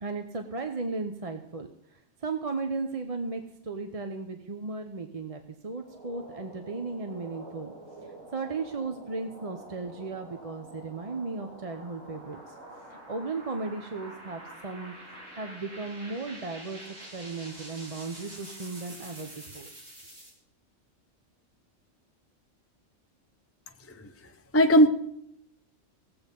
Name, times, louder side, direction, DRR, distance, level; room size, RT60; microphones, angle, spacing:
voice 1, 0.0-7.7 8.3-12.5 13.1-16.8 17.1-19.7, right 3 dB, 35° right, 6 dB, 0.8 m, -36 dB
sound 1, 5.7-20.3, right 1 dB, 80° right, 3.7 m, -47 dB
voice 2, 23.9-24.9, equal, 15° left, 5 dB, 0.5 m, -21 dB
17.0 x 8.0 x 5.3 m, 0.75 s
omnidirectional pair, 1.3 m